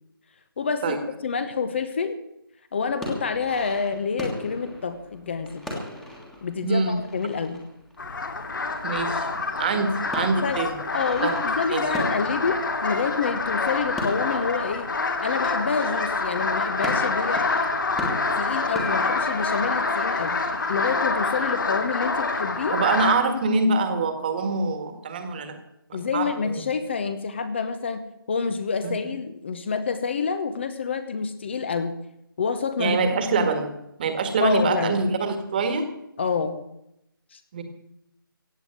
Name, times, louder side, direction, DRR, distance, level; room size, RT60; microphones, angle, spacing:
voice 1, 0.6-1.0 1.2-2.2 2.7-5.6 6.4-7.6 10.4-14.9 15.2-17.5 18.4-20.4 20.7-22.8 25.9-32.0 32.4-33.0 33.4-33.5 34.4-35.0 36.2-36.6 37.3-37.4, left 5 dB, 30° left, 11 dB, 1.0 m, -28 dB
sound 1, 2.9-9.1 9.3-16.0 16.5-21.1, left 1 dB, 5° left, 1.6 m, -38 dB
voice 2, 6.6-7.0 8.8-9.3 9.6-10.7 11.2-11.3 11.7-11.9 22.7-25.6 25.9-26.6 28.8-29.0 32.8-33.7 34.0-35.9 37.5-37.6, right 4 dB, 25° right, 8 dB, 1.7 m, -24 dB
sound 2, 8.0-23.1, left 3 dB, 60° left, 2.7 m, -27 dB
16.0 x 8.0 x 9.2 m, 0.81 s
figure-of-eight pair, 165°, 12 cm